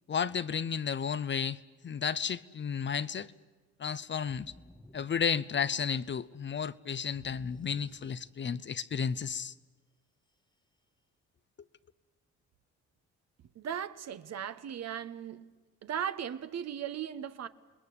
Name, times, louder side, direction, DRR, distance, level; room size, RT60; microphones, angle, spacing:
voice 1, 0.1-3.3 3.8-4.5 4.9-9.5, left 7 dB, 40° left, 0.7 m, -33 dB
sound 1, 4.3-6.0 7.1-8.8, left 1 dB, 15° left, 1.6 m, -56 dB
voice 2, 13.6-15.5 15.8-17.5, right 9 dB, 60° right, 1.2 m, -37 dB
28.5 x 20.0 x 8.6 m
cardioid pair, 90°, 30 cm